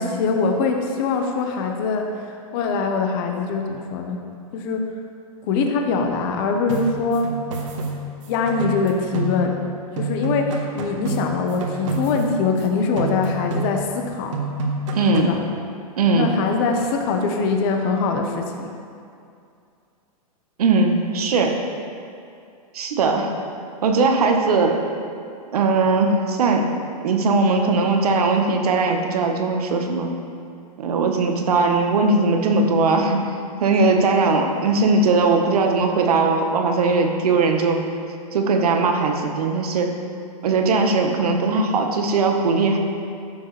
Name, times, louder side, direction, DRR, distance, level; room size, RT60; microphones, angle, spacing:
voice 1, 0.0-4.2 4.5-4.8 5.4-7.3 8.3-9.5 10.0-14.4 15.1-15.4 16.1-18.7, left 4 dB, 35° left, 3 dB, 1.1 m, -23 dB
sound 1, 6.7-9.7 10.0-12.7 13.0-14.0 14.3-15.4, right 2 dB, 55° right, 1.5 m, -29 dB
voice 2, 14.9-15.3 16.0-16.3 20.6-21.6 22.7-23.4 23.8-24.8 25.5-26.7 27.0-30.2 30.8-33.2 33.6-37.8 38.3-39.9 40.4-42.8, right 3 dB, 75° right, 3 dB, 1.4 m, -19 dB
15.0 x 7.0 x 3.4 m, 2.5 s
hypercardioid pair, 155°, 20 cm